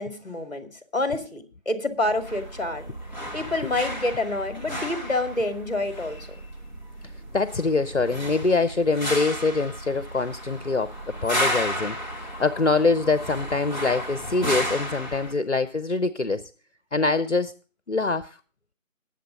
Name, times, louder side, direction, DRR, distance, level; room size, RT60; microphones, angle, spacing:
voice 1, 0.0-2.9 3.3-6.2, left 2 dB, 30° left, 7 dB, 1.8 m, -28 dB
sound 1, 2.0-15.3, equal, 35° right, 1.7 m, -33 dB
voice 2, 7.3-10.9 11.2-16.5 16.9-17.5 17.9-18.4, left 3 dB, 60° left, 13 dB, 0.7 m, -24 dB
20.5 x 7.7 x 3.9 m, 0.38 s
figure-of-eight pair, 175°, 41 cm